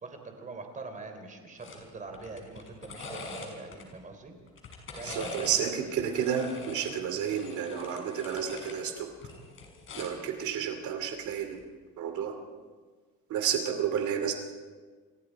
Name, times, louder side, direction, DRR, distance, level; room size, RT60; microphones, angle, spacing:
voice 1, 0.0-4.3 5.0-6.0, right 3 dB, 25° right, 5 dB, 3.7 m, -43 dB
sound 1, 1.6-1.8 2.1-3.8 4.5-5.6 6.0-8.8 9.1-10.3 11.4-11.6, left 3 dB, 40° left, 5.8 m, -43 dB
voice 2, 5.0-9.1 10.0-11.6 12.0-12.3 13.3-14.3, right 8 dB, 65° right, 6 dB, 2.7 m, -31 dB
29.0 x 23.5 x 4.7 m, 1.5 s
cardioid pair, 150°, 32 cm